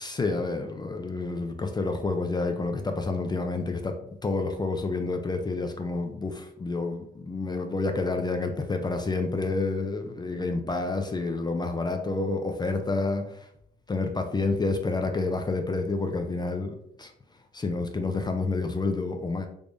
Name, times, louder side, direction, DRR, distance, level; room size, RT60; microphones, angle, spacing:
voice 1, 0.0-13.5 13.9-17.1 17.5-19.5, left 3 dB, 20° left, 5 dB, 0.4 m, -29 dB
3.4 x 3.2 x 2.5 m, 0.72 s
cardioid pair, 85°, 19 cm